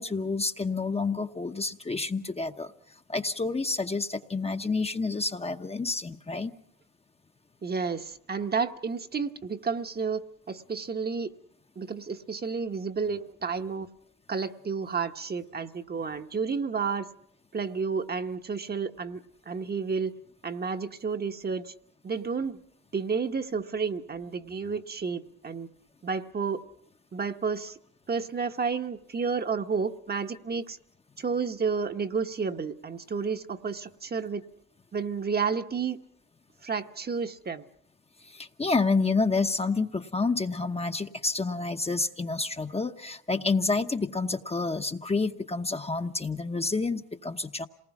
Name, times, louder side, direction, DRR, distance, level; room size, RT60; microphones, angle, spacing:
voice 1, 0.0-2.7 3.1-6.6 38.2-47.7, left 3 dB, 20° left, 7 dB, 0.9 m, -29 dB
voice 2, 7.6-11.3 11.8-13.9 14.3-17.1 17.5-19.2 19.5-20.1 20.4-21.7 22.0-22.6 22.9-25.7 26.0-26.6 27.1-27.8 28.1-30.8 31.2-34.4 34.9-36.0 36.6-37.6, right 5 dB, 30° right, 7 dB, 1.1 m, -31 dB
27.5 x 19.5 x 5.9 m, 0.66 s
cardioid pair, 90°, 30 cm